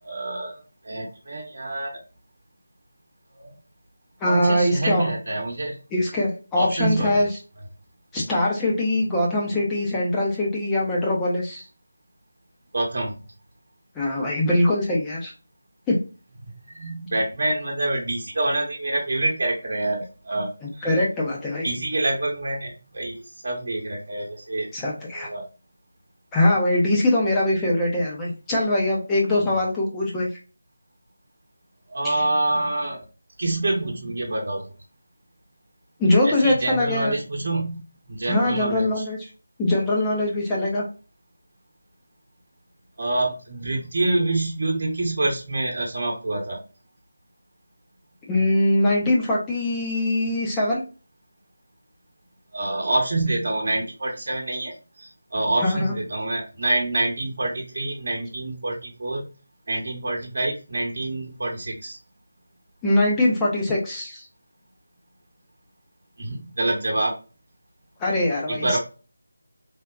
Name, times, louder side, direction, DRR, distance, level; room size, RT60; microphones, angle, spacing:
voice 1, 0.0-2.0 3.3-3.5 4.2-5.8 6.5-7.2 12.7-13.2 16.4-20.5 20.8-20.9 21.6-24.7 25.1-25.5 31.9-33.1 33.4-34.6 36.2-37.8 38.1-39.1 43.0-46.6 52.5-59.2 59.7-62.0 66.2-67.1 68.5-68.8, right 2 dB, 50° right, -2 dB, 0.9 m, -26 dB
voice 2, 4.2-5.1 5.9-7.3 8.1-11.7 14.0-15.3 15.9-16.0 20.8-21.6 24.7-25.3 26.3-30.3 32.0-32.2 36.0-37.1 38.3-39.3 39.6-40.8 48.3-50.8 55.6-55.9 62.8-64.3 68.0-68.8, left 1 dB, 10° left, -4 dB, 0.4 m, -22 dB
3.3 x 2.1 x 2.3 m, 0.34 s
figure-of-eight pair, 170°, 0 cm